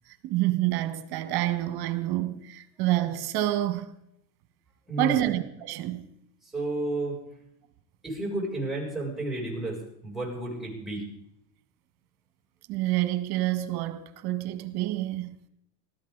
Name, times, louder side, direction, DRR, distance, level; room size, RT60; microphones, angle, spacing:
voice 1, 0.2-3.9 5.0-6.1 12.7-15.3, right 15 dB, 50° right, 1.5 m, -28 dB
voice 2, 4.9-5.3 6.4-7.2 8.0-11.0, right 2 dB, ahead, 7.1 m, -32 dB
19.0 x 13.5 x 4.0 m
hypercardioid pair, 95°, 47 cm